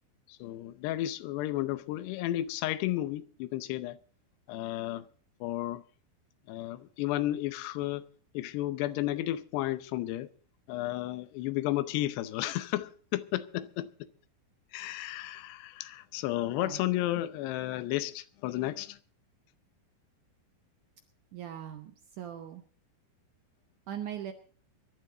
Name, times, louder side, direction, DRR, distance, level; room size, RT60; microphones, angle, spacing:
voice 1, 0.3-4.0 4.5-5.1 5.4-5.8 6.5-8.1 8.3-10.3 10.7-14.1 14.7-19.0, left 15 dB, 85° left, 2.9 m, -33 dB
voice 2, 21.3-22.6 23.9-24.3, right 10 dB, 75° right, 1.9 m, -40 dB
22.5 x 11.5 x 4.0 m
omnidirectional pair, 4.7 m